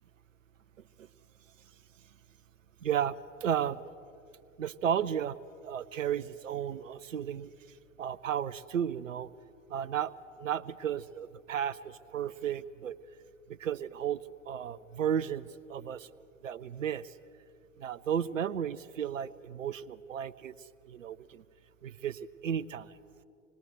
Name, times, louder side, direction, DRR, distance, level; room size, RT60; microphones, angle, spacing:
voice 1, 2.8-3.8 4.6-5.4 5.6-9.3 9.7-10.1 10.4-13.0 13.5-16.1 16.4-17.2 17.8-21.4 21.8-23.0, right 9 dB, 80° right, 14 dB, 0.6 m, -34 dB
25.5 x 20.5 x 7.9 m, 2.7 s
figure-of-eight pair, 85°, 38 cm